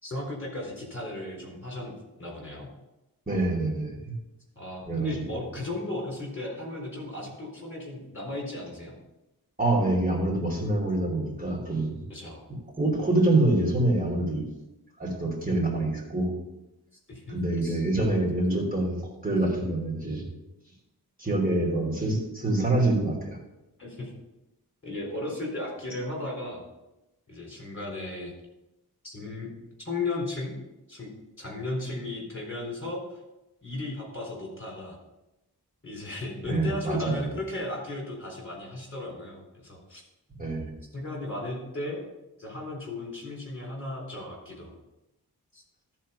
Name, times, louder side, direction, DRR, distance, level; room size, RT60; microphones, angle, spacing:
voice 1, 0.0-2.7 4.6-8.9 12.1-12.4 17.1-17.4 17.6-17.8 23.8-24.1 24.8-26.6 27.3-28.3 29.0-29.5 29.8-30.5 30.9-31.1 31.4-33.0 33.6-35.0 35.8-40.0 40.9-42.0 42.4-44.7 45.5-45.6, left 2 dB, 30° left, -2 dB, 4.0 m, -35 dB
voice 2, 3.3-4.1 4.9-5.4 9.6-12.0 12.5-14.4 15.0-16.3 17.3-20.2 21.2-23.4 36.4-37.3 40.3-40.7, right 2 dB, 20° right, -1 dB, 3.0 m, -26 dB
13.5 x 4.5 x 5.6 m, 0.95 s
wide cardioid pair, 75°, 38 cm